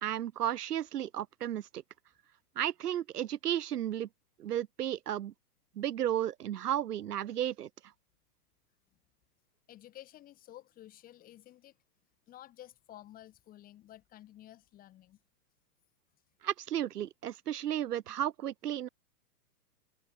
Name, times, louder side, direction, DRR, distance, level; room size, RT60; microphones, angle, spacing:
voice 1, 0.0-1.8 2.6-4.1 4.4-5.3 5.8-7.7 16.4-18.9, right 11 dB, 75° right, 1.3 m, -33 dB
voice 2, 9.7-11.8 12.3-15.2, left 13 dB, 20° left, 5.1 m, -53 dB
hypercardioid pair, 165°, 47 cm